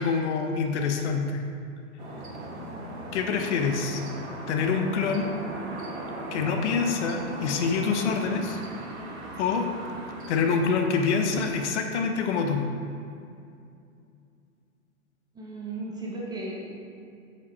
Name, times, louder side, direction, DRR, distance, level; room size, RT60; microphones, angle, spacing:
voice 1, 0.0-1.4 3.1-4.0 4.5-5.3 6.3-8.6 9.4-9.7 10.3-12.6, left 5 dB, 55° left, 4 dB, 0.8 m, -26 dB
sound 1, 2.0-11.7, right 1 dB, 55° right, 1.3 m, -38 dB
voice 2, 15.3-16.8, right 2 dB, 10° right, -3 dB, 0.6 m, -35 dB
5.2 x 4.1 x 5.6 m, 2.5 s
hypercardioid pair, 125°, 41 cm